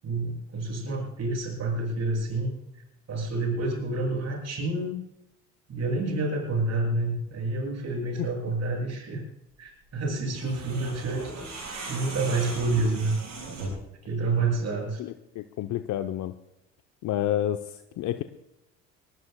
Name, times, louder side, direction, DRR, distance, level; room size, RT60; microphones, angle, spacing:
voice 1, 0.0-2.6 3.1-5.0 5.7-9.2 9.6-11.3 11.9-13.1 14.0-15.0, right 2 dB, 45° right, 1 dB, 7.5 m, -28 dB
sound 1, 10.3-13.9, right 2 dB, 85° right, 6.8 m, -38 dB
voice 2, 15.0-16.3 17.0-18.2, left 12 dB, 55° left, 8 dB, 0.9 m, -29 dB
23.0 x 18.5 x 2.3 m, 0.88 s
hypercardioid pair, 60°, 36 cm